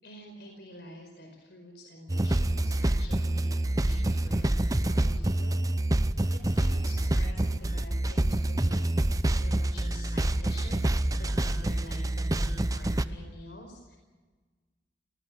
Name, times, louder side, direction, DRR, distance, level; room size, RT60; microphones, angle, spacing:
voice 1, 0.0-5.6 5.9-6.0 6.3-8.9 9.4-14.0, left 1 dB, 65° left, 3 dB, 5.0 m, -47 dB
sound 1, 2.1-13.1, right 1 dB, 20° right, 0.7 m, -27 dB
26.0 x 19.0 x 6.4 m, 1.4 s
head